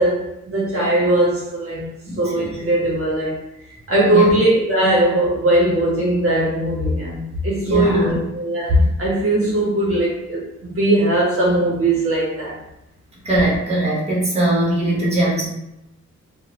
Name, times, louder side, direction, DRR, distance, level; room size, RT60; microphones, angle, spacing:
voice 1, 0.0-1.9 2.2-3.4 3.9-12.6, right 1 dB, 50° right, -5 dB, 0.8 m, -19 dB
voice 2, 2.1-2.5 4.1-4.4 7.6-8.2 13.2-15.5, right 1 dB, 20° right, -4 dB, 1.1 m, -20 dB
3.6 x 2.1 x 2.9 m, 0.85 s
wide cardioid pair, 115°, 29 cm